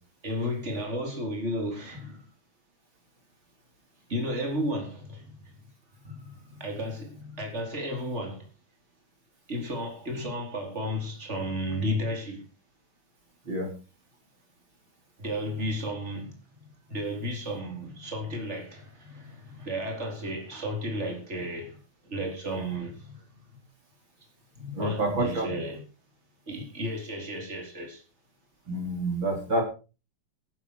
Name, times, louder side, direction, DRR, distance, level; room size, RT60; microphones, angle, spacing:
voice 1, 0.2-2.2 4.1-5.6 6.0-8.5 9.5-12.4 15.2-21.8 22.0-23.2 23.5-23.6 24.5-25.9 26.5-28.0, equal, 30° right, 4.7 m, -33 dB
voice 2, 24.8-25.4 28.7-29.6, right 1 dB, 65° right, 4.7 m, -28 dB
14.5 x 13.0 x 4.9 m
omnidirectional pair, 2.3 m